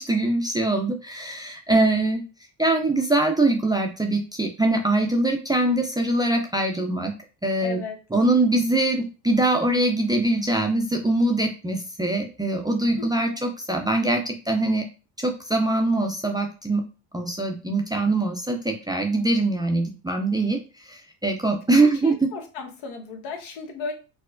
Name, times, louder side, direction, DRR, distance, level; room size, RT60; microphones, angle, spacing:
voice 1, 0.0-2.2 2.6-7.1 7.4-7.8 8.1-14.8 15.2-16.8 17.1-20.6 20.8-22.3, right 2 dB, 10° right, 3 dB, 0.4 m, -23 dB
voice 2, 7.6-8.0 13.0-13.3 22.0-23.9, left 4 dB, 80° left, 3 dB, 1.1 m, -35 dB
4.4 x 2.1 x 2.5 m, 0.32 s
supercardioid pair, 90°, 45 cm